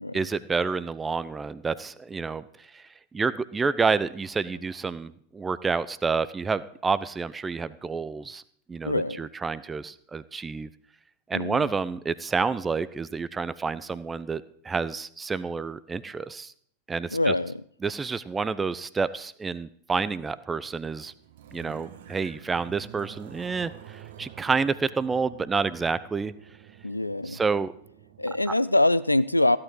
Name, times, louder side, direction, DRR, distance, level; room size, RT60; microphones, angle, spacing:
voice 1, 0.1-2.8 3.1-8.4 8.7-10.7 11.3-16.5 16.9-17.3 17.8-21.1 21.5-26.3 27.3-27.7, right 4 dB, 15° right, 16 dB, 0.6 m, -29 dB
voice 2, 8.8-9.3 11.3-11.7 17.1-17.6 26.8-27.4 28.2-29.6, left 2 dB, 85° left, 16 dB, 0.4 m, -24 dB
sound 1, 20.0-28.5, right 10 dB, 60° right, 1.3 m, -48 dB
15.0 x 11.5 x 4.8 m, 0.62 s
figure-of-eight pair, 90°, 0 cm